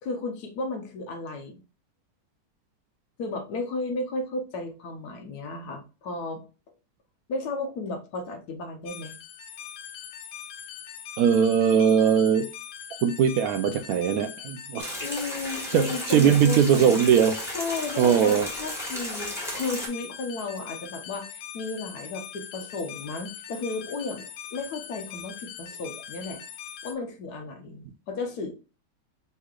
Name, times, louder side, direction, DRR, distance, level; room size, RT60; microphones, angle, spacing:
voice 1, 0.0-1.6 3.2-6.4 7.3-9.2 15.0-17.0 17.5-26.4 26.8-28.5, left 3 dB, 65° left, 1.3 m, -34 dB
sound 1, 8.9-26.9, left 10 dB, 90° left, 0.6 m, -41 dB
voice 2, 11.2-12.5 13.0-15.0 15.7-17.4 18.0-18.5, right 8 dB, 70° right, 0.9 m, -20 dB
sound 2, 14.8-19.9, equal, ahead, 1.3 m, -35 dB
5.5 x 3.1 x 2.4 m
omnidirectional pair, 1.9 m